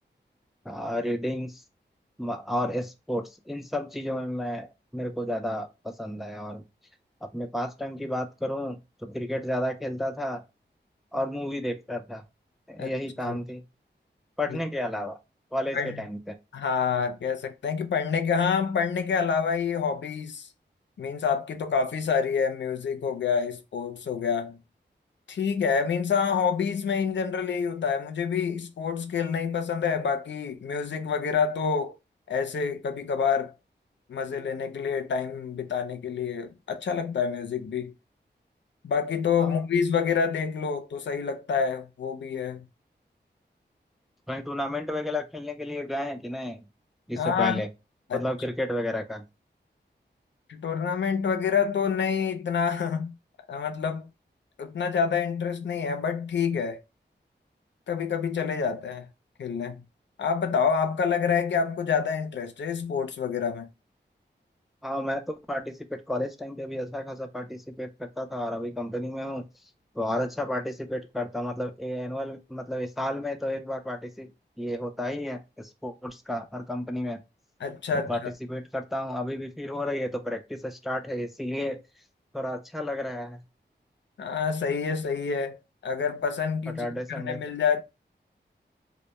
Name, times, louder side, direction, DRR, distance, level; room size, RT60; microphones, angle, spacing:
voice 1, 0.7-1.6 2.2-6.6 7.2-10.4 11.1-12.2 12.7-13.6 14.4-15.2 15.5-16.4 39.4-39.6 44.3-46.7 47.1-47.7 48.1-49.3 64.8-69.5 70.0-74.3 74.6-77.2 77.9-78.2 78.5-81.8 82.3-83.4 86.8-87.4, left 1 dB, ahead, 0.3 m, -32 dB
voice 2, 16.5-20.5 21.0-24.6 25.3-32.0 32.3-33.5 34.1-37.9 38.8-42.7 47.2-47.6 48.1-48.2 50.5-53.1 53.5-54.1 54.6-56.8 57.9-59.1 59.4-59.8 60.2-63.7 77.6-78.3 84.2-86.9 87.2-87.8, left 6 dB, 75° left, 0.4 m, -27 dB
2.1 x 2.1 x 2.8 m
wide cardioid pair, 75°, 19 cm